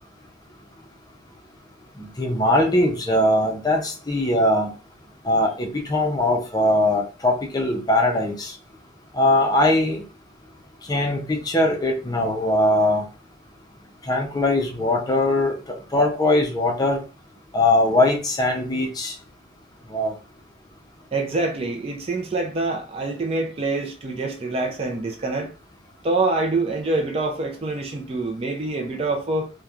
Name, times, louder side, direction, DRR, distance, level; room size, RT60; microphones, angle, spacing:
voice 1, 2.0-4.7 5.2-8.5 9.1-10.0 10.9-13.0 14.1-15.6 15.9-17.0 17.5-19.1 19.9-20.1, left 1 dB, 20° left, 0.5 m, -21 dB
voice 2, 21.1-25.5 26.0-29.5, right 2 dB, 30° right, 0.4 m, -25 dB
3.0 x 2.2 x 2.4 m
head